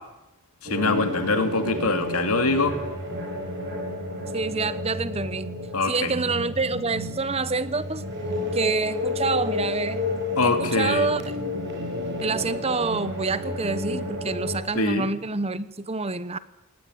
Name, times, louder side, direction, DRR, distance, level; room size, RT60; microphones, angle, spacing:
voice 1, 0.7-2.8 5.7-6.1 10.4-11.1 14.7-15.1, left 3 dB, 80° left, 8 dB, 2.7 m, -23 dB
sound 1, 0.7-14.6, left 2 dB, 50° right, 7.7 m, -31 dB
voice 2, 4.3-5.5 5.8-8.0 8.5-10.0 10.4-11.4 12.2-16.4, right 3 dB, 25° right, 15 dB, 0.9 m, -27 dB
20.5 x 18.5 x 9.4 m, 0.95 s
head